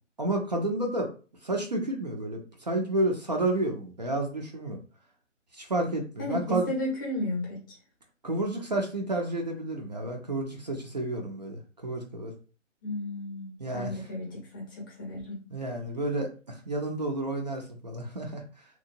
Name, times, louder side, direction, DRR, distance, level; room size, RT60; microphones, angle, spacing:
voice 1, 0.2-1.1 1.4-4.8 5.5-6.7 8.2-12.3 13.6-13.9 15.5-18.6, right 1 dB, 35° right, 2 dB, 0.4 m, -30 dB
voice 2, 6.2-7.6 12.8-15.4, left 1 dB, 15° left, -3 dB, 0.6 m, -33 dB
2.7 x 2.2 x 2.5 m, 0.36 s
figure-of-eight pair, 150°, 37 cm